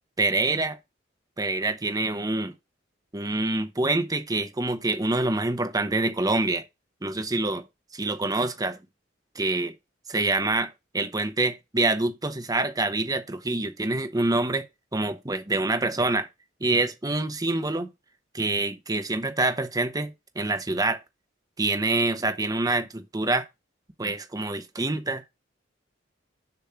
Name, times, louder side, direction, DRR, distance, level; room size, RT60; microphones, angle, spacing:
voice 1, 0.2-0.8 1.4-2.5 3.1-6.6 7.0-7.6 7.9-8.8 9.3-9.7 10.1-14.7 14.9-16.3 16.6-17.9 18.3-21.0 21.6-23.4 24.0-25.2, right 2 dB, 20° right, 0.9 m, -26 dB
6.9 x 3.3 x 5.7 m
head